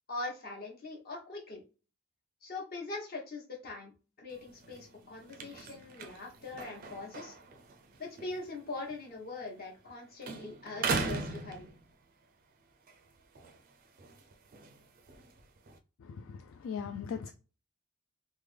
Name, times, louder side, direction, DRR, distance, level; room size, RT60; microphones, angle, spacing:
voice 1, 0.1-1.6 2.4-3.9 4.2-7.3 8.0-11.7, left 3 dB, 45° left, 1.1 m, -42 dB
sound 1, 4.3-9.9 10.2-12.2 12.7-15.8, right 4 dB, 40° right, 0.4 m, -40 dB
voice 2, 16.0-17.3, left 6 dB, 65° left, 0.3 m, -39 dB
3.3 x 2.1 x 3.2 m
head